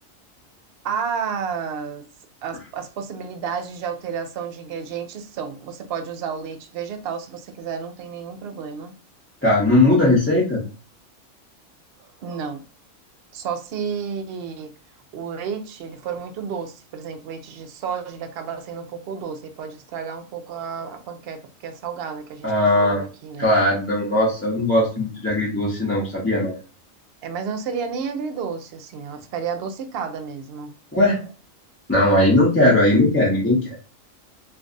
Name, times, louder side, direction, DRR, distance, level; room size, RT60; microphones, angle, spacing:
voice 1, 0.8-2.1 2.4-8.9 12.0-12.6 13.3-14.7 15.1-23.5 27.2-30.8, right 6 dB, 60° right, 0.7 m, -31 dB
voice 2, 9.4-10.6 22.4-23.0 23.4-26.6 30.9-31.2 31.9-33.7, left 1 dB, 10° left, 0.8 m, -18 dB
2.5 x 2.3 x 3.8 m
omnidirectional pair, 1.3 m